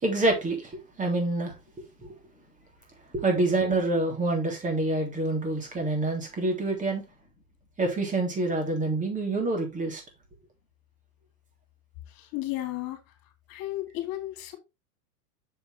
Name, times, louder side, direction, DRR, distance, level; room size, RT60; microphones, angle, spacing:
voice 1, 0.0-1.5 3.1-7.0 7.8-10.0, right 2 dB, 15° right, 3.4 m, -27 dB
voice 2, 12.2-13.0 13.5-14.6, left 15 dB, 45° left, 2.8 m, -33 dB
7.0 x 6.9 x 3.3 m
hypercardioid pair, 120°, 46 cm